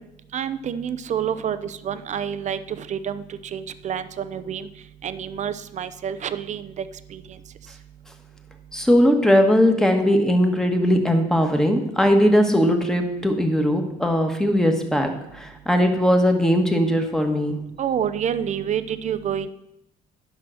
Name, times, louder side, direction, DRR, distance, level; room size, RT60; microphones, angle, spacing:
voice 1, 0.3-3.2 3.5-4.7 5.0-6.8 7.1-7.2 17.8-19.5, right 8 dB, 45° right, 13 dB, 0.7 m, -28 dB
voice 2, 8.7-17.6, equal, 5° left, 4 dB, 1.5 m, -19 dB
10.5 x 5.8 x 6.3 m, 0.86 s
cardioid pair, 110°, 17 cm